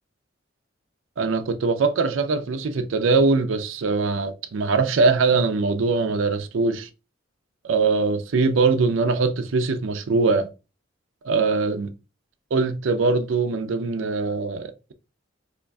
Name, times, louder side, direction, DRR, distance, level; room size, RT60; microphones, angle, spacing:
voice 1, 1.2-6.9 7.6-10.5 11.2-11.9 12.5-14.9, right 4 dB, 80° right, 0.5 m, -22 dB
5.0 x 2.5 x 2.3 m
head